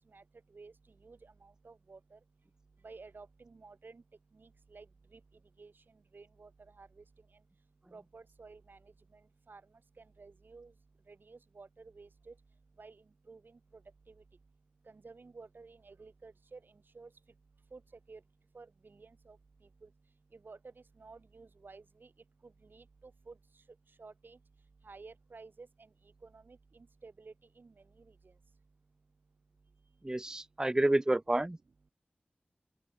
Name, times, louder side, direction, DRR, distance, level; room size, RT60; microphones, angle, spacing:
voice 1, 1.0-2.2 2.8-4.0 4.4-4.8 5.1-5.2 5.6-5.7 6.1-6.5 6.8-6.9 7.9-8.8 9.5-9.6 10.2-10.7 11.1-12.3 12.8-12.9 13.3-13.4 15.0-16.6 16.9-17.1 17.7-17.8 18.1-18.2 18.5-19.4 20.4-20.6 21.0-22.1 22.7-22.8 23.3-23.4 24.0-24.4 24.9-25.7 26.3-26.6 27.0-27.7, right 4 dB, 80° right, 2.6 m, -52 dB
voice 2, 30.0-31.6, right 1 dB, 20° right, 0.4 m, -29 dB
open air
wide cardioid pair, 55°, 3 cm